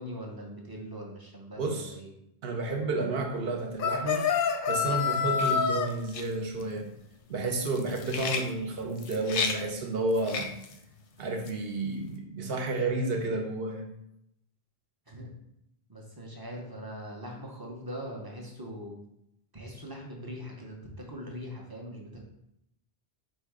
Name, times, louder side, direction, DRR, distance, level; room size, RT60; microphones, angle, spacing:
voice 1, 0.0-2.1 15.1-15.3 15.9-19.0 19.5-22.3, equal, 25° right, -1 dB, 0.5 m, -41 dB
voice 2, 1.6-1.9 2.4-4.3 4.7-6.8 7.3-10.5 11.2-13.9, right 2 dB, 65° right, 2 dB, 0.9 m, -31 dB
sound 1, 3.8-5.9, left 6 dB, 60° left, 0.6 m, -27 dB
sound 2, 5.4-11.9, left 5 dB, 85° left, 0.9 m, -36 dB
4.4 x 2.2 x 4.6 m, 0.81 s
omnidirectional pair, 1.1 m